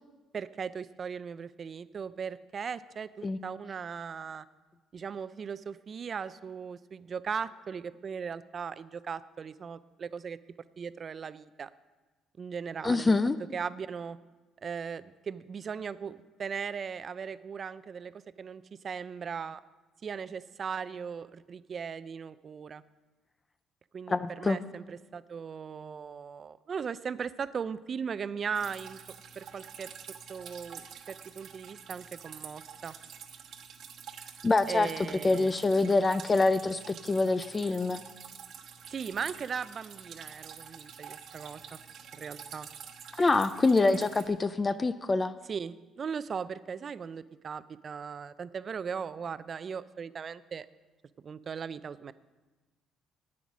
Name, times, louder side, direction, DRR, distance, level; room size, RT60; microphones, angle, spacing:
voice 1, 0.3-4.5 4.9-10.4 10.8-11.7 12.4-13.2 13.5-14.2 14.6-19.6 20.0-22.8 23.9-29.0 29.4-29.9 30.3-33.0 34.7-35.5 38.9-41.8 42.1-42.7 45.5-50.7 51.2-52.1, right 6 dB, 45° right, 15 dB, 0.5 m, -38 dB
voice 2, 12.8-13.4 24.1-24.6 34.4-34.9 35.2-38.0 43.2-45.4, left 3 dB, 25° left, 12 dB, 0.4 m, -25 dB
Drip, 28.5-44.3, right 7 dB, 70° right, 1.1 m, -48 dB
9.3 x 8.5 x 6.1 m, 1.2 s
supercardioid pair, 80°, 0 cm